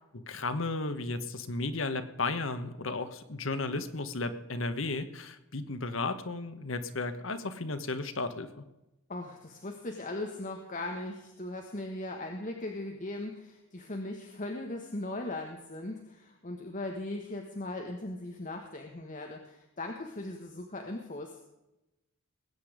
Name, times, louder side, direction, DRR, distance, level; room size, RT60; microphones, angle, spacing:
voice 1, 0.1-8.6, left 3 dB, 70° left, 10 dB, 1.3 m, -34 dB
voice 2, 9.1-21.4, left 2 dB, 40° left, 3 dB, 1.4 m, -39 dB
20.0 x 8.8 x 5.0 m, 0.96 s
head